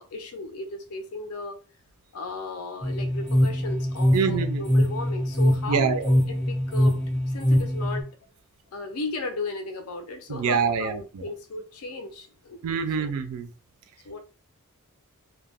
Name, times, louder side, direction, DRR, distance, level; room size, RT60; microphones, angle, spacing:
voice 1, 0.0-1.6 2.1-8.2 8.7-12.6 13.0-13.1 14.0-14.2, left 3 dB, 80° left, 0.5 m, -36 dB
sound 1, 2.8-8.0, equal, 10° left, 0.5 m, -23 dB
voice 2, 4.1-4.6 5.7-6.1 10.3-11.2 12.6-13.5, right 6 dB, 75° right, 0.3 m, -25 dB
2.2 x 2.1 x 3.3 m
head